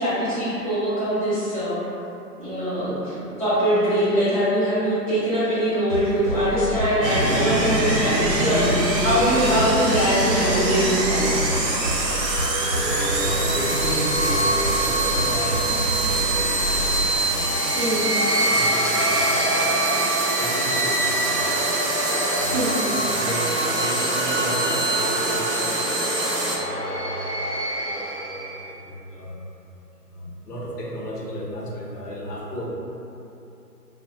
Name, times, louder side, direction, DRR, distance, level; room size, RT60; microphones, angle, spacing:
voice 1, 0.0-1.8 2.4-11.5 17.8-18.0 22.5-22.8, equal, 20° right, -16 dB, 0.6 m, -22 dB
sound 1, 5.9-17.1, equal, 50° right, 0.8 m, -29 dB
sound 2, 7.0-26.6, right 2 dB, 80° right, 0.7 m, -25 dB
sound 3, 11.8-28.6, right 1 dB, 40° left, 0.5 m, -27 dB
voice 2, 12.7-21.6 22.3-29.4 30.1-32.7, equal, 70° left, -3 dB, 0.7 m, -34 dB
3.4 x 2.0 x 2.2 m, 2.9 s
figure-of-eight pair, 155°, 49 cm